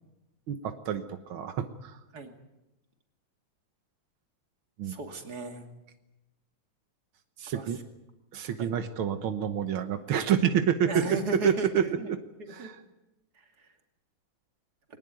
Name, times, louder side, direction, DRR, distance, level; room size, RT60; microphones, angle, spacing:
voice 1, 0.5-2.0 4.8-5.0 7.4-7.8 8.3-11.2 11.4-11.8 12.5-12.8, right 9 dB, 85° right, 8 dB, 2.0 m, -28 dB
voice 2, 4.8-5.7 7.5-7.7 8.6-8.7 10.9-12.1 12.4-12.7 13.4-13.7, right 2 dB, 50° right, 4 dB, 3.0 m, -35 dB
22.5 x 19.0 x 9.3 m, 0.96 s
omnidirectional pair, 2.2 m